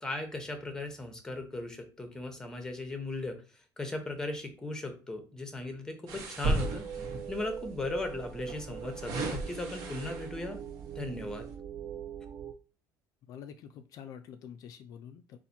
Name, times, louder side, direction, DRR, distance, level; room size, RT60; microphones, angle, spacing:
voice 1, 0.0-6.9 7.3-10.6 10.9-11.5, left 2 dB, 10° left, 6 dB, 0.8 m, -37 dB
sound 1, 6.1-7.4 8.4-10.5 11.0-11.2, right 2 dB, 65° right, 1.2 m, -34 dB
sound 2, 6.6-12.5, right 8 dB, 35° right, 0.4 m, -42 dB
voice 2, 13.3-15.4, left 8 dB, 55° left, 8 dB, 0.3 m, -47 dB
4.1 x 2.5 x 4.2 m, 0.36 s
cardioid pair, 160°, 7 cm